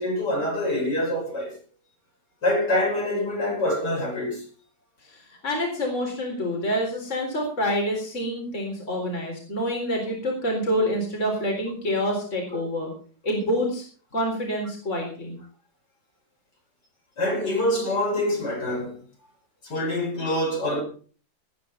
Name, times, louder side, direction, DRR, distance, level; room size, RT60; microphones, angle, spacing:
voice 1, 0.0-1.5 2.4-4.4 17.2-18.9 19.6-20.8, left 1 dB, 65° left, 6.1 m, -25 dB
voice 2, 5.0-12.9 13.2-13.8 14.1-15.4, equal, 40° left, 4.2 m, -27 dB
18.0 x 9.6 x 5.7 m
omnidirectional pair, 2.0 m